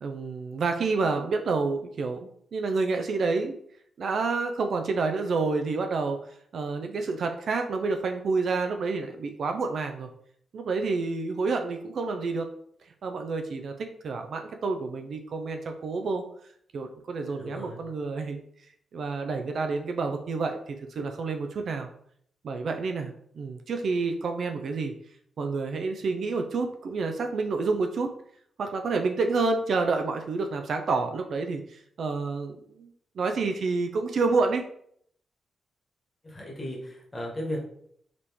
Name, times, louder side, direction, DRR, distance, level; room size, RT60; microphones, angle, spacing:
voice 1, 0.0-3.5 4.0-6.2 6.5-10.1 10.5-12.5 13.0-13.7 14.0-16.2 16.7-18.4 18.9-21.9 22.4-24.9 25.4-28.1 28.6-32.9 33.2-34.6, right 4 dB, 50° right, 5 dB, 0.4 m, -29 dB
voice 2, 17.3-17.8 36.2-37.6, equal, 20° left, -3 dB, 1.4 m, -35 dB
4.8 x 3.1 x 3.5 m, 0.66 s
wide cardioid pair, 170°, 0 cm